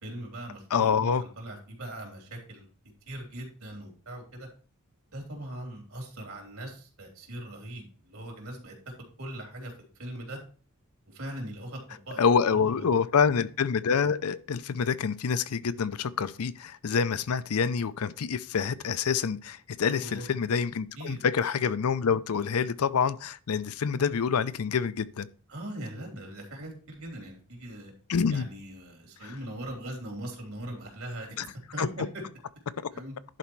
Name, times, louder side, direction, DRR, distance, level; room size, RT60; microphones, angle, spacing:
voice 1, 0.0-2.7 3.0-4.5 5.1-10.4 11.1-12.9 19.8-20.2 21.0-21.2 25.5-27.9 28.3-31.9 32.1-32.2 32.9-33.1, right 1 dB, 75° right, 3.1 m, -41 dB
voice 2, 0.7-1.2 12.2-25.3 28.1-28.5 29.2-29.3 31.4-31.5 31.8-31.9, left 6 dB, 90° left, 0.5 m, -27 dB
11.0 x 4.3 x 4.6 m
head